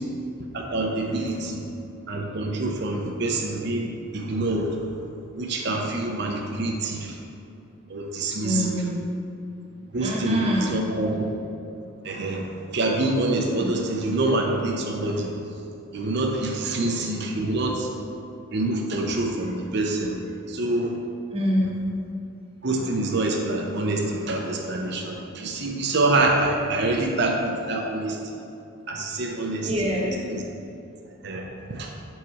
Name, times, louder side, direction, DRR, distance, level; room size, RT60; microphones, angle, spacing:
voice 1, 0.5-1.6 2.1-4.7 5.3-7.2 7.9-8.5 9.9-10.4 10.7-11.2 12.0-15.3 15.9-17.9 18.5-20.2 20.5-21.0 22.6-28.2 28.9-29.7 31.2-31.9, right 2 dB, 55° right, 1 dB, 0.6 m, -26 dB
voice 2, 8.2-9.0 10.0-10.8 14.0-14.1 19.3-19.5 20.2-20.3 21.3-21.9 29.2-29.3 29.6-30.2, equal, 30° right, -3 dB, 1.0 m, -26 dB
6.5 x 4.7 x 4.2 m, 2.5 s
head